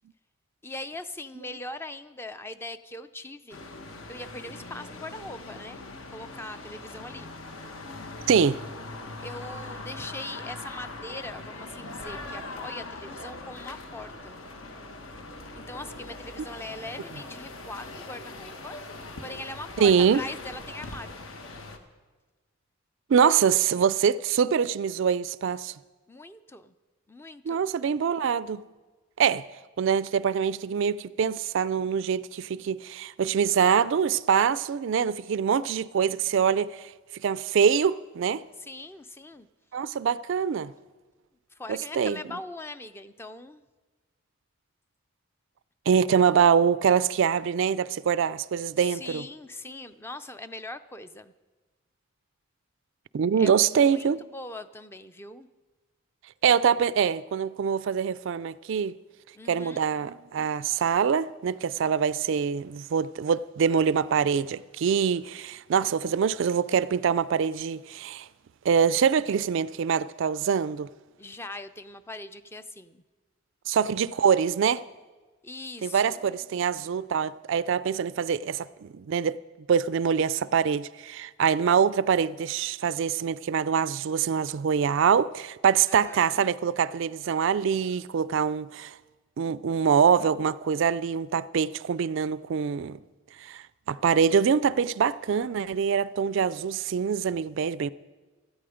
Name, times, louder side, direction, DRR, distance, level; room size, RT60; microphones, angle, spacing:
voice 1, 0.6-3.6 4.1-5.8 6.1-7.3 9.2-14.4 15.6-18.8 19.2-21.2 26.1-26.7 27.1-27.7 38.6-39.5 41.5-43.6 48.8-51.3 53.4-55.5 59.3-59.9 71.2-73.0 75.4-76.3 85.9-86.4, left 2 dB, 10° left, 0.4 m, -41 dB
sound 1, 3.5-21.8, left 2 dB, 70° left, 1.3 m, -41 dB
voice 2, 8.3-8.6 19.8-20.2 23.1-25.7 27.5-28.6 29.2-29.4 29.8-36.9 37.2-38.4 39.7-40.7 41.7-42.2 45.9-49.2 53.1-54.2 56.4-58.9 59.5-68.3 68.7-70.9 73.7-74.8 75.8-79.4 79.7-88.9 89.4-93.0 93.4-93.6 93.9-97.9, right 7 dB, 60° right, 0.3 m, -24 dB
16.5 x 13.5 x 5.0 m
head